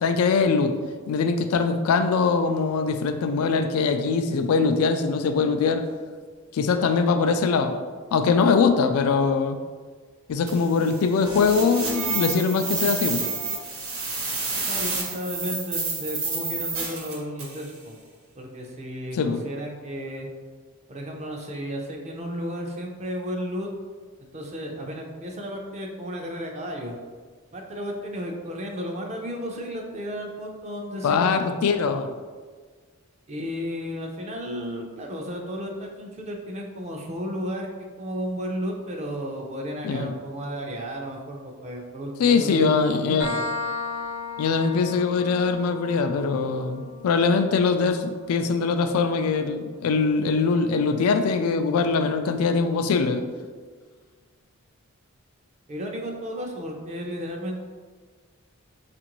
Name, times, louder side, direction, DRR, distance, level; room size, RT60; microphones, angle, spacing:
voice 1, 0.0-0.8 1.1-5.8 6.5-7.7 8.1-9.6 10.3-13.2 19.2-19.4 31.0-32.1 39.8-40.1 42.2-43.3 44.4-53.2, left 5 dB, 85° left, 8 dB, 0.3 m, -22 dB
sound 1, 10.5-17.7, right 4 dB, 80° right, 1.0 m, -29 dB
voice 2, 14.7-18.0 18.4-20.3 20.9-23.7 24.2-27.0 27.5-31.5 31.8-32.0 33.3-37.7 38.0-43.4 55.7-57.6, equal, 30° right, 1 dB, 0.5 m, -33 dB
sound 2, 43.2-50.6, left 4 dB, 55° right, 0.9 m, -37 dB
5.1 x 2.5 x 3.0 m, 1.5 s
head